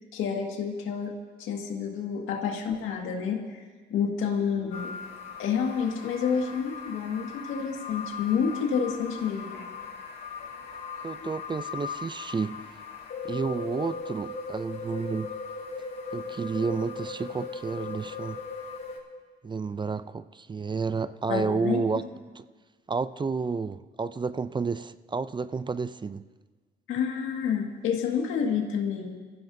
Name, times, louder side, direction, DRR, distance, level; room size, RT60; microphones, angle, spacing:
voice 1, 0.1-1.1 1.4-4.9 5.4-9.6 10.4-10.5 11.2-11.3 21.2-21.8 26.9-29.2, left 7 dB, 90° left, 2 dB, 1.9 m, -29 dB
sound 1, 4.7-19.0, left 4 dB, 65° left, 3.7 m, -39 dB
voice 2, 11.0-12.6 13.2-15.3 16.1-18.4 19.4-22.0 22.4-22.5 22.9-26.2, right 4 dB, 25° right, 15 dB, 0.4 m, -31 dB
24.0 x 15.0 x 2.7 m, 1.4 s
cardioid pair, 90°, 20 cm